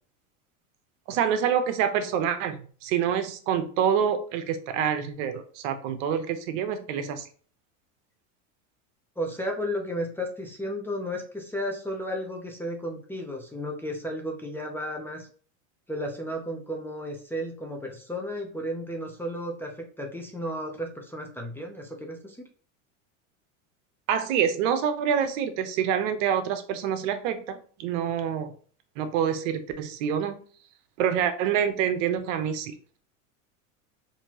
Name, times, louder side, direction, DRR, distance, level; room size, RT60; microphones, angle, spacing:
voice 1, 1.1-7.3 24.1-28.5 29.0-30.4 31.0-32.7, right 8 dB, 65° right, 9 dB, 0.8 m, -26 dB
voice 2, 9.2-15.3 15.9-19.7 20.0-22.5, equal, 5° left, 1 dB, 0.6 m, -33 dB
4.4 x 2.7 x 2.9 m, 0.43 s
supercardioid pair, 110°, 40 cm